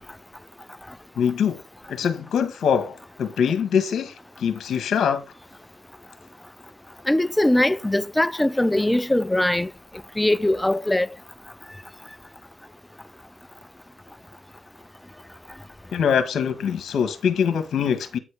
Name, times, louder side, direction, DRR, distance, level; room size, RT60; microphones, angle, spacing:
voice 1, 1.1-1.6 1.9-5.2 15.9-18.2, left 7 dB, 70° left, 1.4 m, -23 dB
voice 2, 7.1-9.7 10.2-11.1, left 1 dB, 10° left, 0.5 m, -21 dB
8.8 x 4.3 x 4.9 m
supercardioid pair, 45°, 0 cm